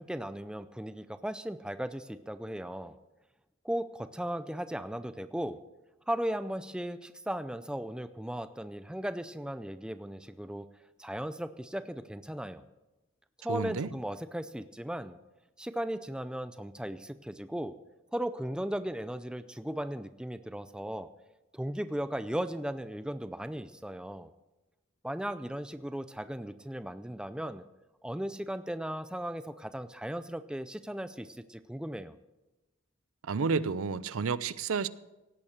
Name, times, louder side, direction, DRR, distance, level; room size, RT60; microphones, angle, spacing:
voice 1, 0.0-3.0 3.6-5.6 6.1-10.7 11.0-12.6 13.4-15.2 15.6-17.8 18.1-21.1 21.5-24.3 25.0-27.6 28.0-32.2, right 1 dB, 5° right, 0.4 m, -36 dB
voice 2, 13.5-13.9 33.2-34.9, right 5 dB, 75° right, 0.5 m, -30 dB
17.5 x 8.6 x 6.6 m
head